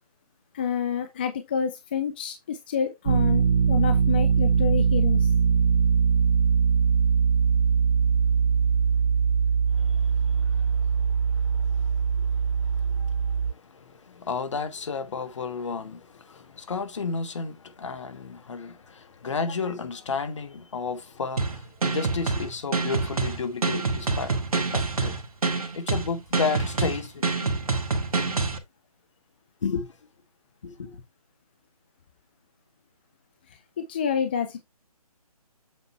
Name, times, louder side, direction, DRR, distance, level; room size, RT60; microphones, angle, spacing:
voice 1, 0.5-5.3 33.8-34.6, left 7 dB, 15° left, 0.4 m, -28 dB
sound 1, 3.1-13.5, right 6 dB, 50° right, 0.4 m, -22 dB
voice 2, 9.7-25.2 25.7-27.5 28.1-28.3 29.6-29.9 30.6-31.0, left 5 dB, 50° left, 1.5 m, -33 dB
sound 2, 21.4-28.6, right 4 dB, 65° right, 1.8 m, -26 dB
8.2 x 5.8 x 3.2 m
figure-of-eight pair, 155°, 20 cm